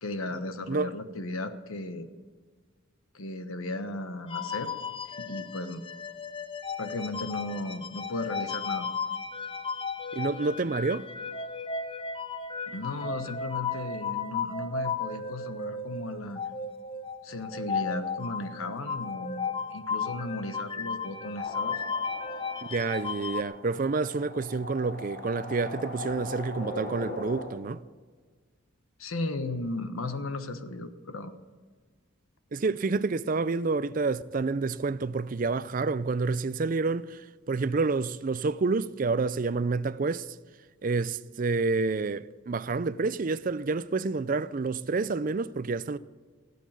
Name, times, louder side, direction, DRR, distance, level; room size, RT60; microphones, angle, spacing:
voice 1, 0.0-2.1 3.1-4.7 5.1-5.8 6.8-8.9 12.7-16.4 17.2-21.8 29.0-31.3, left 2 dB, 85° left, 1.2 m, -35 dB
sound 1, 4.3-23.4, left 5 dB, 25° left, 0.7 m, -35 dB
voice 2, 10.1-11.1 22.6-27.8 32.5-40.3 40.8-46.0, right 4 dB, 40° right, 0.4 m, -28 dB
sound 2, 21.3-27.5, left 2 dB, 50° left, 3.8 m, -40 dB
17.0 x 8.4 x 9.3 m
head